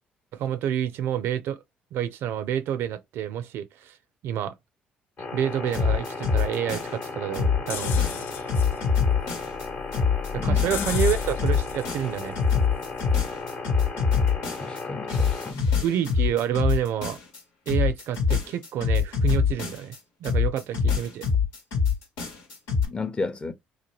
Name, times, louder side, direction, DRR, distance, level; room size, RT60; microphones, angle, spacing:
voice 1, 0.3-1.6 1.9-4.0 4.2-4.5 5.3-8.3 10.3-12.4 15.8-17.2 17.7-21.2, right 9 dB, 70° right, 0.4 m, -28 dB
sound 1, 5.2-15.5, left 3 dB, 50° left, 1.0 m, -36 dB
sound 2, 5.7-7.1 7.3-9.6 9.9-14.8 15.1-17.4 17.7-20.0 20.2-22.9, left 6 dB, 90° left, 1.2 m, -24 dB
sound 3, 7.7-13.5, left 7 dB, 70° left, 0.4 m, -37 dB
voice 2, 10.4-10.7 14.5-15.8 22.9-23.5, left 3 dB, 25° left, 0.6 m, -33 dB
2.9 x 2.2 x 2.9 m
supercardioid pair, 70°, 4 cm